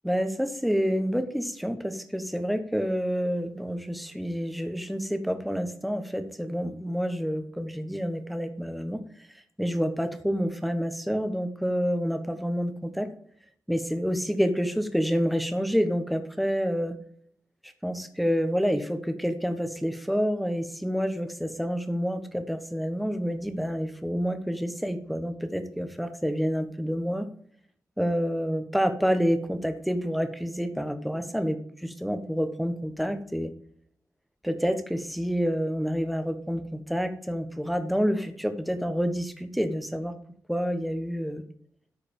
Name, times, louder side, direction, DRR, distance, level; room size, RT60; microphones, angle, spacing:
voice 1, 0.0-9.0 9.6-13.1 13.7-17.0 17.8-27.3 28.0-33.5 34.4-40.1 40.5-41.4, equal, ahead, 8 dB, 1.1 m, -28 dB
13.0 x 4.9 x 5.3 m, 0.63 s
wide cardioid pair, 125°, 7 cm